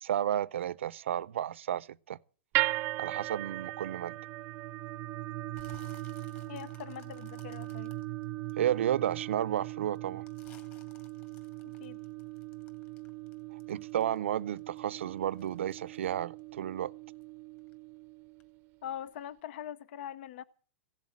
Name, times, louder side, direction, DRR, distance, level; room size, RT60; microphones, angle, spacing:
voice 1, 0.0-2.2 3.0-4.2 8.6-10.3 13.5-16.9, right 11 dB, 80° right, 0.6 m, -32 dB
sound 1, 2.5-18.8, right 18 dB, 35° right, 0.6 m, -39 dB
sound 2, 5.5-9.1 9.5-14.3 14.6-17.3 17.6-18.0 18.4-18.5, left 6 dB, 30° left, 2.6 m, -60 dB
voice 2, 6.5-7.9 11.6-12.0 18.8-20.4, left 10 dB, 60° left, 0.7 m, -42 dB
16.5 x 7.5 x 8.8 m
hypercardioid pair, 145°, 7 cm